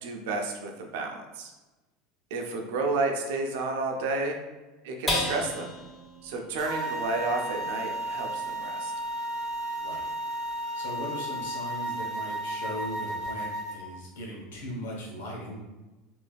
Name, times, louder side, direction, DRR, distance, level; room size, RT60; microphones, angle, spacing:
voice 1, 0.0-1.5 2.3-4.4 4.8-5.7 6.2-8.9, right 3 dB, 75° right, 2 dB, 0.5 m, -31 dB
sound 1, 5.1-11.8 12.2-12.3 12.7-13.2, left 1 dB, 25° left, 1.2 m, -38 dB
sound 2, 6.6-13.8, right 1 dB, 60° right, 0.9 m, -33 dB
voice 2, 9.8-10.1 10.7-15.6, equal, 85° left, -2 dB, 0.9 m, -39 dB
3.3 x 2.7 x 2.3 m, 1.1 s
hypercardioid pair, 95°, 0 cm